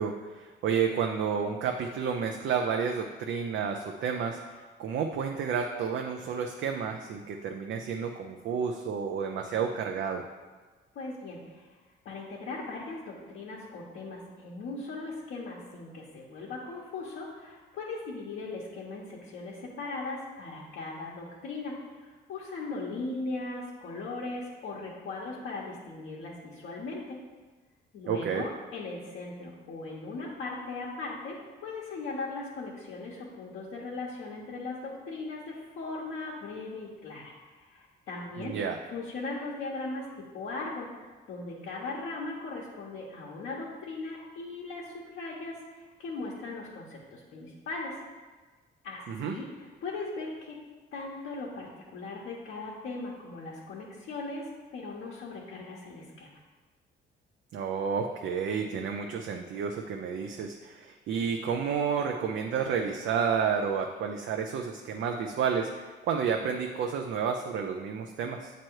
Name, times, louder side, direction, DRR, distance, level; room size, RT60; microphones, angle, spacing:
voice 1, 0.0-10.2 28.1-28.4 38.4-38.8 49.1-49.4 57.5-68.5, right 6 dB, 70° right, 3 dB, 0.5 m, -31 dB
voice 2, 10.9-11.8 12.0-27.2 27.9-38.5 38.9-48.0 48.8-50.6 50.9-54.5 54.7-56.3, left 3 dB, 75° left, -4 dB, 1.1 m, -39 dB
7.5 x 3.0 x 4.6 m, 1.3 s
cardioid pair, 90°, 20 cm